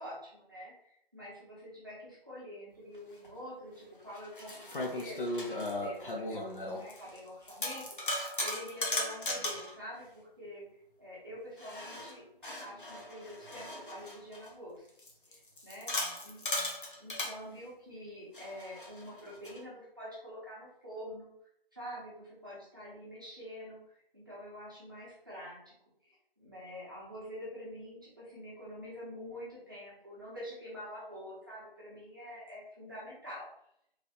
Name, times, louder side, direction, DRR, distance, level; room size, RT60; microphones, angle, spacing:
voice 1, 0.0-7.8 8.1-10.6 11.0-14.9 15.2-15.9 16.2-16.4 17.0-21.3 21.7-23.8 24.1-25.7 26.0-33.5, equal, 20° right, -8 dB, 0.9 m, -46 dB
sound 1, 3.2-3.3 4.1-7.2 7.5-9.7 11.6-14.5 15.0-17.3 18.3-19.6, left 1 dB, 60° left, 0.8 m, -37 dB
3.2 x 2.9 x 2.8 m, 0.71 s
figure-of-eight pair, 175°, 30 cm